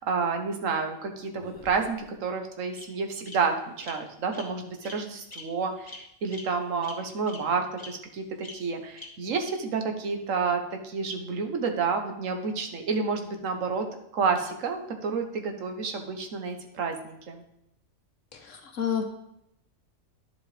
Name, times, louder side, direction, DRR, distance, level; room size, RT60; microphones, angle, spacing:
voice 1, 0.0-13.9 14.1-17.4, right 5 dB, 70° right, 5 dB, 1.4 m, -30 dB
Bird vocalization bird call bird song, 1.3-2.1 2.8-2.9 3.3-3.4 3.8-3.9 4.3-4.5 4.8-5.0 5.3-5.4 5.9-6.0 6.3-6.4 6.8-6.9 7.3-7.4 7.8-7.9 8.4-8.5 9.0-9.1 9.4-9.5, left 2 dB, 15° left, 1.1 m, -43 dB
voice 2, 18.3-19.0, left 8 dB, 70° left, 5 dB, 1.2 m, -30 dB
10.5 x 7.6 x 3.3 m, 0.80 s
omnidirectional pair, 1.4 m